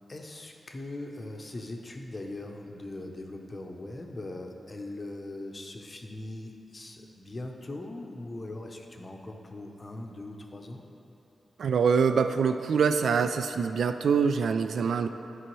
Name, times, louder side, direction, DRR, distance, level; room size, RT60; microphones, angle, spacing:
voice 1, 0.1-10.8, left 2 dB, 25° left, 2 dB, 0.6 m, -40 dB
voice 2, 11.6-15.1, right 6 dB, 90° right, 9 dB, 0.3 m, -24 dB
13.0 x 5.5 x 3.1 m, 2.9 s
wide cardioid pair, 170°, 0 cm